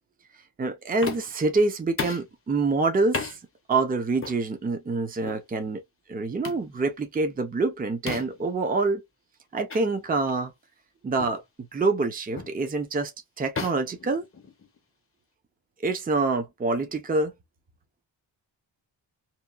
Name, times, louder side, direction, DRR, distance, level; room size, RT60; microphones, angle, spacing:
voice 1, 0.6-3.4 3.7-5.8 6.1-9.0 9.5-10.5 11.0-11.4 11.7-13.1 13.4-14.3 15.8-17.3, right 3 dB, 20° right, 0.5 m, -26 dB
sound 1, 1.0-1.4 2.0-2.3 3.1-3.4 4.2-4.4 5.2-5.5 6.4-6.7 8.1-8.5 9.7-9.8 10.3-10.4 11.2-11.4 12.4-12.6 13.6-14.8, left 4 dB, 30° left, 0.5 m, -34 dB
2.8 x 2.2 x 2.3 m
wide cardioid pair, 155°, 46 cm